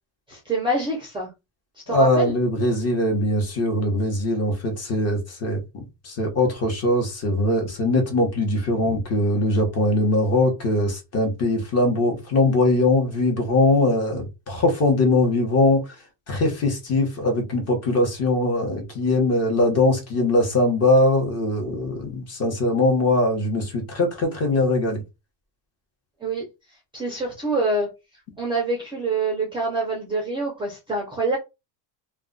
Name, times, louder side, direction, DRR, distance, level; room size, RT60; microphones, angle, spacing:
voice 1, 0.3-1.3 1.9-2.4 8.8-9.0 26.2-26.5 26.9-27.9 28.4-31.4, right 2 dB, 10° right, 0.4 m, -26 dB
voice 2, 1.9-15.8 16.3-25.0, left 2 dB, 30° left, 0.8 m, -21 dB
2.2 x 2.2 x 3.7 m
cardioid pair, 160°, 49 cm